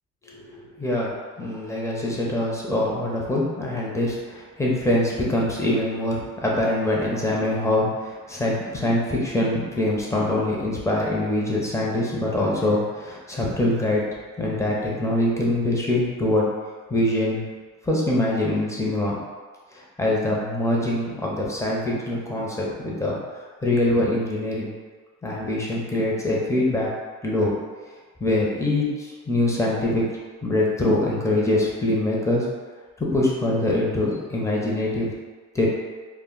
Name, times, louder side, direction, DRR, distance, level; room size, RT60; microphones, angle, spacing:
voice 1, 0.2-1.1 1.4-14.0 14.4-16.5 16.9-17.4 17.9-19.2 19.7-23.2 23.6-24.7 25.2-26.9 27.2-27.5 28.2-30.0 30.4-32.4 33.0-35.1 35.5-35.7, left 1 dB, 10° left, -4 dB, 0.7 m, -24 dB
2.2 x 2.1 x 3.8 m, 1.4 s
cardioid pair, 90°, 30 cm